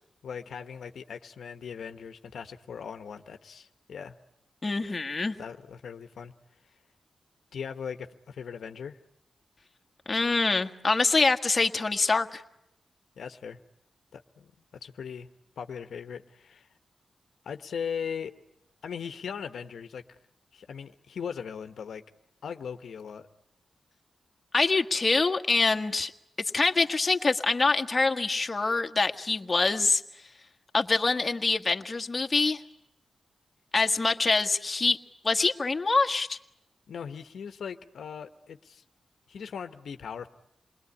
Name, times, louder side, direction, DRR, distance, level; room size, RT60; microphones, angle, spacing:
voice 1, 0.2-4.2 5.4-6.3 7.5-9.0 13.2-13.6 14.1-14.5 14.8-15.3 15.6-16.7 17.4-18.3 18.8-20.0 20.5-22.0 22.4-23.3 36.9-38.8 39.3-40.3, left 7 dB, 85° left, 8 dB, 1.1 m, -39 dB
voice 2, 4.6-5.3 10.1-12.4 24.5-26.1 26.5-30.0 30.7-32.6 33.7-35.0 35.2-36.4, left 3 dB, 35° left, 5 dB, 1.5 m, -25 dB
28.0 x 21.0 x 9.7 m, 0.80 s
cardioid pair, 80°, 0 cm